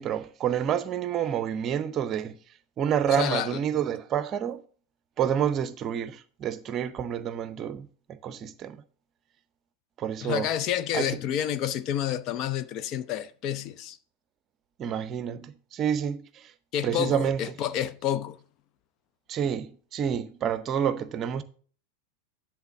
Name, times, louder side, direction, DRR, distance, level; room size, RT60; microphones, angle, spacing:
voice 1, 0.0-2.4 2.8-4.6 5.2-8.8 10.0-10.5 10.9-11.2 14.8-16.5 16.8-17.5 19.3-21.4, right 8 dB, 30° right, 0.7 m, -29 dB
voice 2, 3.1-3.6 10.2-14.0 16.7-18.4, left 10 dB, 35° left, 0.5 m, -29 dB
10.5 x 3.5 x 6.5 m
figure-of-eight pair, 90°, 0 cm